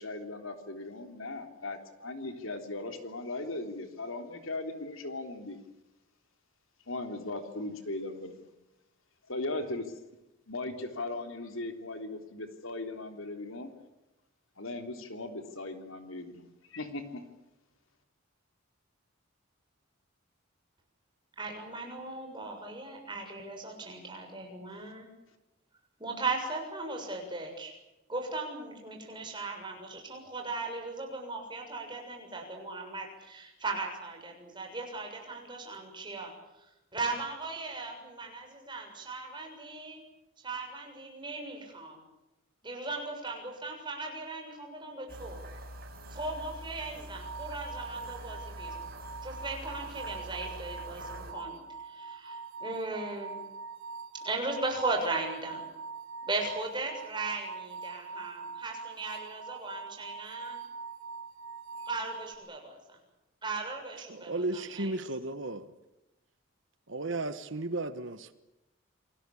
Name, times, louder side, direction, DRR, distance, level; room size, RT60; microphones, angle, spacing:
voice 1, 0.0-5.6 6.9-8.4 9.3-9.9 10.5-13.7 14.6-16.4 16.7-17.2, left 2 dB, 75° left, 3.5 m, -38 dB
voice 2, 21.4-25.1 26.0-27.7 28.1-36.3 36.9-40.0 40.4-42.0 42.6-45.4 46.1-48.9 49.2-53.4 54.1-55.6 56.3-60.6 61.9-63.0 63.4-64.9, right 3 dB, 20° right, 7.0 m, -37 dB
sound 1, 45.1-51.3, right 1 dB, 45° right, 7.2 m, -45 dB
sound 2, 47.2-62.3, right 4 dB, 90° right, 3.7 m, -43 dB
voice 3, 64.1-65.7 66.9-68.3, right 2 dB, 60° right, 1.3 m, -34 dB
28.0 x 20.0 x 8.5 m
head